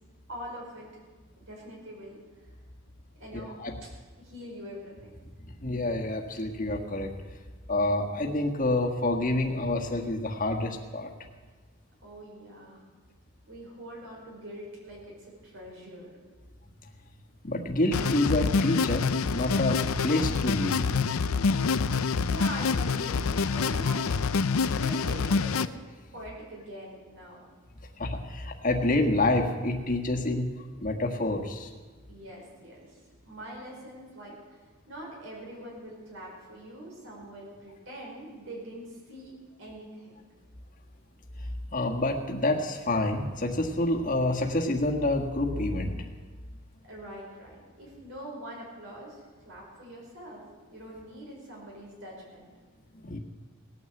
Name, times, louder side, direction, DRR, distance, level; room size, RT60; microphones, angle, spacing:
voice 1, 0.3-0.9 1.3-2.2 3.2-3.9 4.2-5.1 12.0-12.8 13.5-16.1 22.2-24.1 24.7-25.7 26.1-27.4 32.1-34.6 34.9-39.3 39.6-40.2 46.8-50.4 50.7-52.4, equal, 60° right, -3 dB, 4.9 m, -43 dB
voice 2, 3.3-3.7 5.6-7.1 7.7-11.1 17.4-20.8 28.0-30.5 30.8-31.7 41.7-46.0 53.0-53.2, left 2 dB, 40° left, 2 dB, 1.6 m, -28 dB
sound 1, 17.9-25.7, left 4 dB, 80° left, 0.6 m, -26 dB
18.0 x 9.5 x 7.8 m, 1.4 s
head